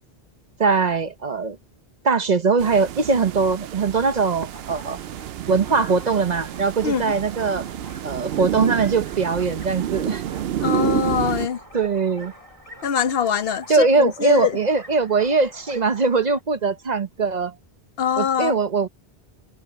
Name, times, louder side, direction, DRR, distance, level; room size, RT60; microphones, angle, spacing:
voice 1, 0.6-1.6 2.0-5.0 5.5-7.7 8.0-10.2 11.7-12.3 13.7-17.6 18.2-18.9, right 4 dB, 45° right, 0.8 m, -21 dB
sound 1, 2.6-11.5, right 10 dB, 75° right, 0.8 m, -29 dB
sound 2, 4.5-16.4, equal, 30° left, 3.6 m, -46 dB
voice 2, 10.6-11.6 12.8-14.6 18.0-18.6, left 7 dB, 70° left, 1.0 m, -23 dB
omnidirectional pair, 1.1 m